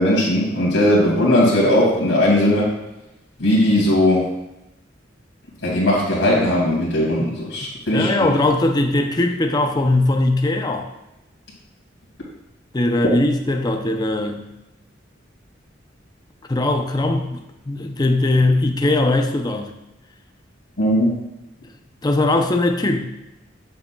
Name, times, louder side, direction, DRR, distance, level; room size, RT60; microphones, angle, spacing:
voice 1, 0.0-2.7 3.4-4.3 5.6-8.3 20.8-21.1, left 1 dB, 85° left, -4 dB, 2.4 m, -18 dB
voice 2, 7.9-10.9 12.7-14.5 16.5-19.7 22.0-23.0, left 2 dB, 20° left, 5 dB, 0.5 m, -20 dB
7.6 x 6.9 x 2.3 m, 0.94 s
head